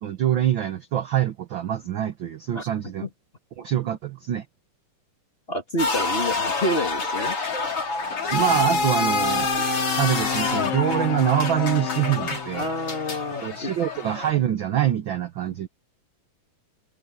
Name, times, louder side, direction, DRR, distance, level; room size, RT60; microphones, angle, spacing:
voice 1, 0.0-3.1 3.6-4.4 8.3-9.6 10.0-12.7 13.4-15.7, right 11 dB, 80° right, 1.1 m, -25 dB
voice 2, 5.5-7.4 12.5-13.7, left 1 dB, 25° left, 1.4 m, -28 dB
sound 1, 5.8-14.3, left 3 dB, 45° left, 5.3 m, -27 dB
Bowed string instrument, 8.1-13.9, left 11 dB, 65° left, 2.5 m, -32 dB
omnidirectional pair, 3.6 m